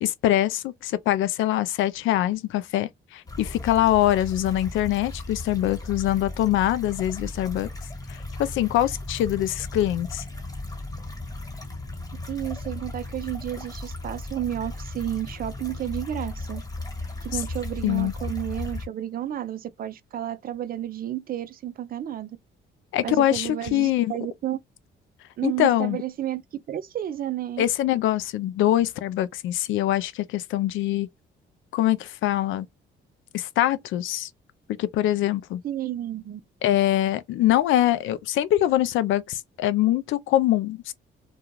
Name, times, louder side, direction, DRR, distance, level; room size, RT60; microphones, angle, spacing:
voice 1, 0.0-7.7 8.1-10.2 17.8-18.1 22.9-24.1 25.4-26.0 27.6-31.1 31.7-32.7 33.3-34.3 34.8-35.6 36.6-40.9, left 13 dB, 80° left, 0.4 m, -23 dB
sound 1, 3.3-18.9, left 2 dB, 20° left, 1.4 m, -36 dB
voice 2, 12.3-16.6 17.2-22.4 23.0-24.6 25.4-26.4 26.7-27.6 35.6-36.4, right 12 dB, 45° right, 0.4 m, -31 dB
2.4 x 2.3 x 3.0 m
cardioid pair, 90°, 20 cm